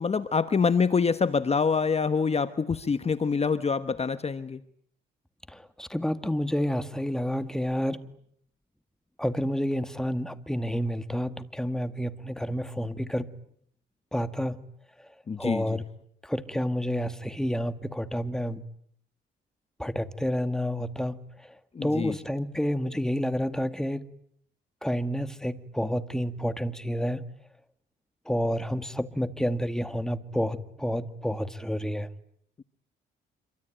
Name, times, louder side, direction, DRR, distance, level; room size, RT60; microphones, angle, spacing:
voice 1, 0.0-4.6 15.3-15.8 21.7-22.2, left 5 dB, 30° left, 12 dB, 1.3 m, -26 dB
voice 2, 5.5-8.2 9.2-13.3 14.1-14.7 15.0-15.1 15.4-15.8 16.2-18.6 19.8-21.6 21.8-24.1 24.8-27.2 28.3-32.1, equal, 5° left, 11 dB, 1.9 m, -29 dB
26.5 x 24.0 x 9.1 m, 0.68 s
cardioid pair, 90°, 20 cm